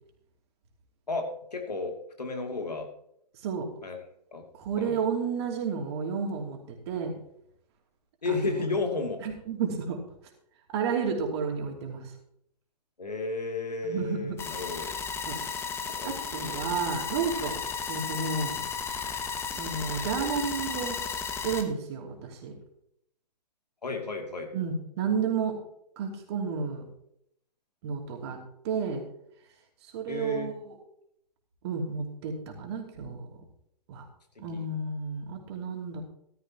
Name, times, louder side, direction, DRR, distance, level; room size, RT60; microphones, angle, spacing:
voice 1, 1.1-2.9 3.8-4.0 4.3-4.4 4.8-5.0 8.2-9.2 13.0-15.0 15.9-16.2 23.8-24.5 30.1-30.5 34.5-34.7, left 3 dB, 75° left, 3 dB, 2.6 m, -33 dB
voice 2, 4.5-7.1 8.2-8.7 9.2-10.0 10.7-12.1 13.8-14.4 15.3-15.4 16.0-17.5 17.9-18.6 19.5-22.5 24.5-25.6 26.0-26.9 27.8-28.4 28.6-29.0 29.8-30.7 31.6-33.4 33.9-34.1 34.4-36.0, right 5 dB, 40° right, 2 dB, 2.8 m, -31 dB
sound 1, 14.4-21.6, left 6 dB, 10° left, 1.0 m, -34 dB
14.5 x 12.5 x 2.9 m, 0.72 s
figure-of-eight pair, 120°, 21 cm